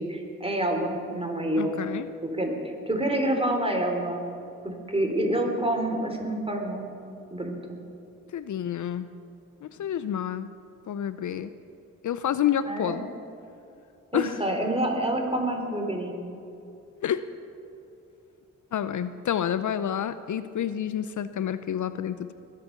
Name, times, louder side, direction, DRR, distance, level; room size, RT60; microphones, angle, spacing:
voice 1, 0.0-1.8 2.2-4.3 4.6-6.9 7.3-7.8 12.7-13.0 14.1-16.2, right 1 dB, 15° right, 2 dB, 3.9 m, -28 dB
voice 2, 1.6-2.1 8.3-9.1 9.6-10.5 10.9-11.5 12.0-13.1 14.1-14.4 17.0-17.3 18.7-22.3, left 9 dB, 60° left, 13 dB, 0.7 m, -29 dB
21.5 x 8.4 x 6.8 m, 2.7 s
supercardioid pair, 40°, 33 cm